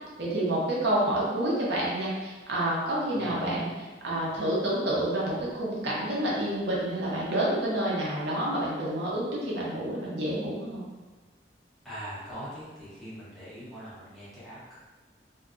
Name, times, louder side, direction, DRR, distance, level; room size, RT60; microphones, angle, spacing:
voice 1, 0.2-10.9, right 1 dB, 75° right, -6 dB, 0.7 m, -29 dB
voice 2, 11.8-14.7, equal, ahead, -12 dB, 0.8 m, -42 dB
2.7 x 2.2 x 2.3 m, 1.3 s
head